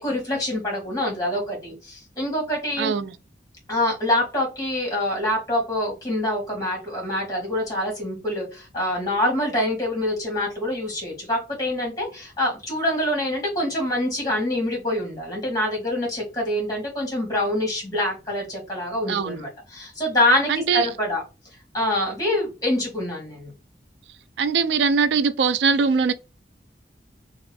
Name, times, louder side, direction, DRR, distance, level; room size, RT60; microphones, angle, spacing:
voice 1, 0.0-2.9 3.7-21.2 21.7-23.5, left 1 dB, 20° left, 1.5 m, -25 dB
voice 2, 2.8-3.2 19.1-19.4 20.5-20.9 24.4-26.1, right 5 dB, 80° right, 0.3 m, -21 dB
2.9 x 2.5 x 3.3 m
head